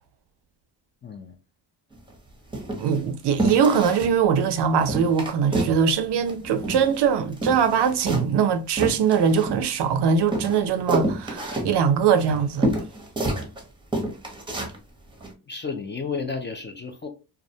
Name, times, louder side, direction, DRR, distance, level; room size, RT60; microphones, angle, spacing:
voice 1, 1.0-1.4 15.5-17.1, left 5 dB, 25° left, 0.4 m, -32 dB
sound 1, 1.9-2.1 2.5-3.0 3.4-4.2 4.4-4.5 4.8-5.8 6.1-7.1 7.3-9.9 10.3-13.6 13.9-14.8 15.2-15.3, right 1 dB, 10° right, 0.7 m, -28 dB
voice 2, 2.8-12.7, right 7 dB, 65° right, 0.5 m, -22 dB
2.3 x 2.0 x 2.6 m
cardioid pair, 80°, 45 cm